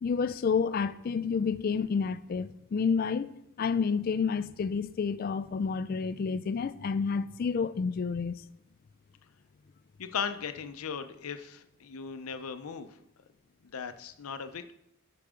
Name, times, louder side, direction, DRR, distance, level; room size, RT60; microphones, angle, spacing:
voice 1, 0.0-8.4, left 5 dB, 45° left, 0.3 m, -29 dB
voice 2, 10.0-12.9 13.6-14.7, left 6 dB, 85° left, 0.6 m, -37 dB
10.0 x 5.8 x 3.6 m
head